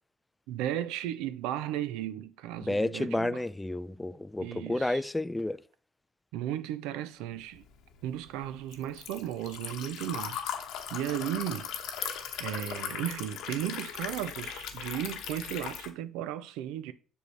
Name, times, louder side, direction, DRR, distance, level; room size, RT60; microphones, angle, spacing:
voice 1, 0.5-3.4 4.4-5.0 6.3-7.6 8.0-10.4 10.9-11.7 12.0-12.1 12.4-16.9, right 12 dB, 80° right, 0.5 m, -35 dB
voice 2, 2.7-5.6, left 1 dB, 10° left, 0.3 m, -31 dB
Liquid, 7.6-15.9, left 8 dB, 75° left, 0.9 m, -38 dB
6.4 x 5.0 x 3.3 m
supercardioid pair, 70°, 0 cm